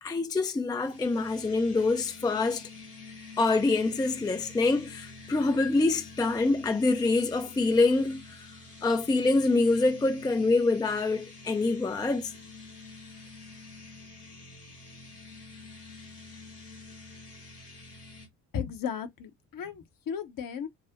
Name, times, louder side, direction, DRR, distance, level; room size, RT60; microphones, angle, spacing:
voice 1, 0.0-2.7 3.4-8.5 8.8-12.3, left 3 dB, 10° left, 0.5 m, -26 dB
sound 1, 0.8-18.3, left 3 dB, 85° left, 1.4 m, -47 dB
voice 2, 18.5-20.7, left 7 dB, 45° left, 0.9 m, -35 dB
4.7 x 2.1 x 2.8 m
figure-of-eight pair, 45°, 46 cm